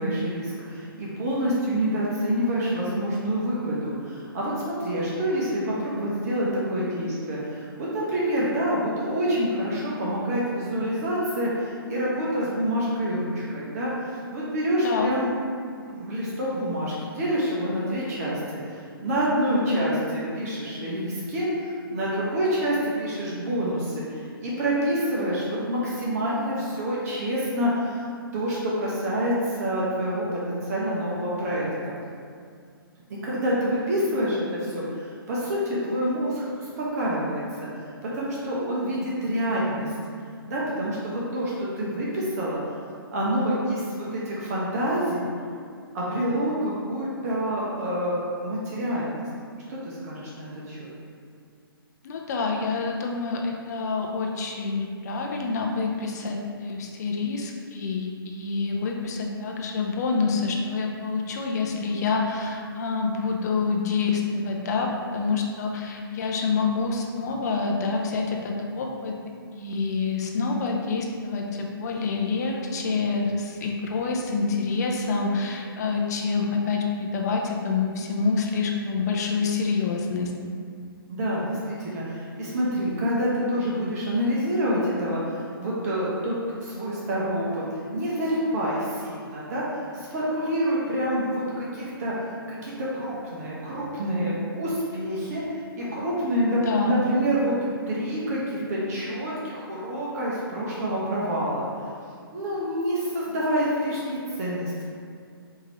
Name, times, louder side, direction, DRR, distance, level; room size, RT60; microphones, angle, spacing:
voice 1, 0.0-15.3 15.8-28.1 28.3-31.9 33.2-37.4 37.8-39.9 40.5-42.6 43.1-45.3 45.9-49.2 49.7-50.9 81.1-86.3 86.6-95.4 95.8-97.6 97.9-101.7 102.3-104.7, equal, 40° right, -6 dB, 0.8 m, -27 dB
voice 2, 52.0-69.1 69.5-80.3 96.7-97.0, left 4 dB, 45° left, 0 dB, 0.5 m, -27 dB
4.9 x 2.7 x 3.0 m, 2.2 s
figure-of-eight pair, 135°, 13 cm